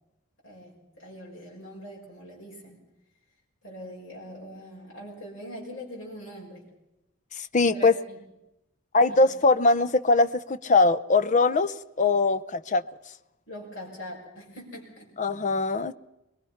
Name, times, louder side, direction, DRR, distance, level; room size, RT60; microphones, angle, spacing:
voice 1, 0.4-2.8 3.6-6.7 7.7-8.2 9.1-9.3 13.5-15.1, equal, 60° left, 6.1 m, -42 dB
voice 2, 7.4-7.9 8.9-12.8 15.2-15.9, left 3 dB, 35° left, 0.6 m, -22 dB
22.5 x 22.0 x 5.8 m
head